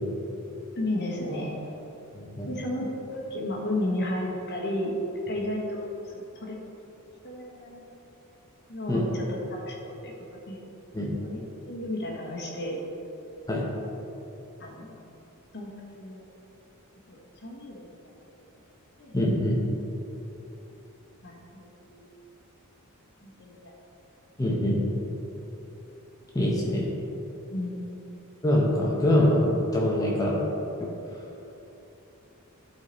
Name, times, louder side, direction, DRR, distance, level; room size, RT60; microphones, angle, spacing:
voice 1, 0.7-1.6 2.5-5.0 5.3-6.6 7.2-8.0 8.7-10.6 11.2-12.8 14.6-14.9 15.5-15.7 16.0-16.3 17.1-17.9 19.0-19.2 21.2-22.1 23.2-23.7 27.5-27.8, left 1 dB, 50° left, -2 dB, 1.4 m, -33 dB
voice 2, 2.1-2.5 8.9-9.0 10.9-11.1 13.5-13.7 19.1-19.6 24.4-24.8 26.3-26.9 28.4-30.4 30.8-30.9, left 1 dB, 15° left, -4 dB, 0.9 m, -24 dB
11.0 x 4.1 x 4.3 m, 3.0 s
head